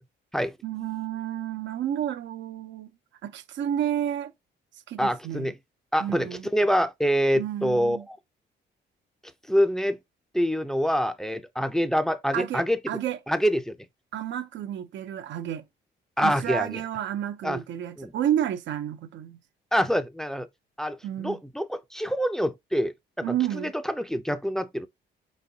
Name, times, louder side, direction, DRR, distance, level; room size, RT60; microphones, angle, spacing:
voice 1, 0.6-2.9 3.2-4.3 4.9-5.5 6.0-6.5 7.3-8.0 12.3-13.2 14.1-15.6 16.2-19.4 21.0-21.4 23.2-23.7, right 10 dB, 70° right, 0.7 m, -30 dB
voice 2, 5.0-5.5 5.9-8.2 9.5-10.0 10.3-12.8 13.3-13.8 16.2-16.8 17.4-17.6 18.0-18.1 19.7-20.5 20.8-23.2 23.5-24.9, equal, ahead, 0.6 m, -26 dB
4.5 x 4.1 x 2.8 m
cardioid pair, 90°, 20 cm